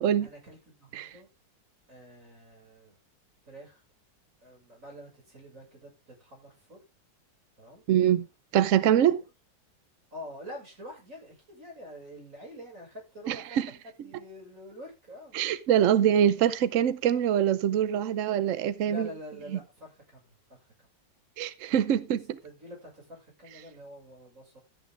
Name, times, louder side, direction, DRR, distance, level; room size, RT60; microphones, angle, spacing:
voice 1, 0.2-1.3 1.9-3.0 3.5-3.8 4.4-6.8 7.6-7.8 10.1-13.6 14.0-15.4 18.8-20.4 22.4-24.6, equal, 35° right, 6.9 m, -46 dB
voice 2, 7.9-8.3 8.5-9.2 13.3-13.7 15.3-19.1 21.4-22.4, right 10 dB, 80° right, 0.7 m, -24 dB
13.0 x 9.3 x 3.7 m
omnidirectional pair, 2.3 m